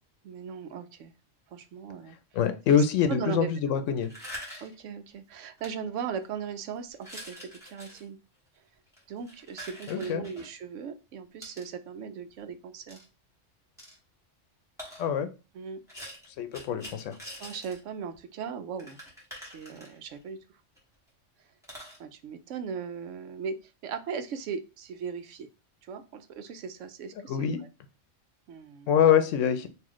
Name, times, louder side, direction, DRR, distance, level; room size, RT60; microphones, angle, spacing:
voice 1, 0.2-1.1 1.5-2.2 3.1-3.8 4.6-8.2 9.1-13.0 15.5-15.8 17.4-19.0 19.4-20.4 22.0-25.5 25.8-27.5 28.5-28.9, right 6 dB, 80° right, 9 dB, 0.9 m, -38 dB
voice 2, 2.3-4.1 9.9-10.2 15.0-15.3 16.4-17.2 27.3-27.6 28.9-29.7, left 8 dB, 90° left, 9 dB, 0.9 m, -24 dB
sound 1, 4.0-4.8 5.6-5.7 6.2-6.5 6.9-8.0 8.9-10.5 11.4-11.7 12.9-13.0 13.8-14.0 14.8-15.1 15.9-17.8 18.1-18.2 18.4-18.5 18.8-20.2 20.8-20.9 21.1-21.2 21.6-22.0, equal, ahead, 1.4 m, -44 dB
3.0 x 2.7 x 3.7 m, 0.30 s
omnidirectional pair, 1.3 m